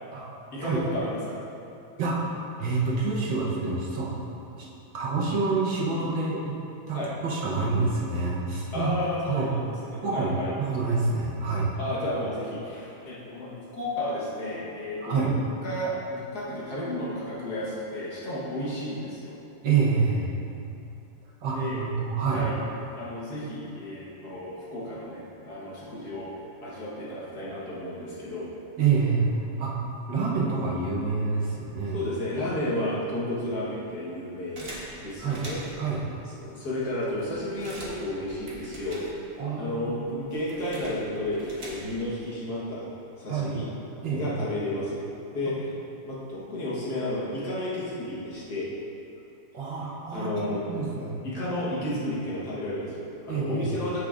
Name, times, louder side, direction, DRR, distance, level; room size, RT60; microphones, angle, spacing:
voice 1, 0.5-1.4 6.9-7.1 8.7-9.6 9.9-10.5 11.8-15.3 15.6-19.4 21.5-21.8 22.3-22.6 22.9-26.3 26.6-28.5 31.9-34.7 35.0-35.6 36.3-39.1 39.6-42.9 43.2-43.7 44.1-45.7 46.0-48.7 50.1-50.6 51.2-54.0, left 1 dB, 55° left, -7 dB, 1.6 m, -32 dB
voice 2, 2.0-2.3 2.6-4.2 4.6-4.7 4.9-6.5 6.9-8.9 9.2-9.6 10.0-11.7 15.0-15.3 19.6-20.3 21.4-22.4 28.8-29.3 29.6-29.8 30.1-32.0 35.2-35.4 35.8-36.0 39.4-40.1 43.3-43.6 44.0-44.4 49.5-51.2 51.4-51.5 53.3-53.7, right 4 dB, 70° right, -5 dB, 1.6 m, -27 dB
sound 1, 34.6-35.9 36.5-36.6 36.8-39.5 39.8-42.2, right 1 dB, 40° right, 1.0 m, -43 dB
8.3 x 6.4 x 2.4 m, 2.7 s
omnidirectional pair, 2.3 m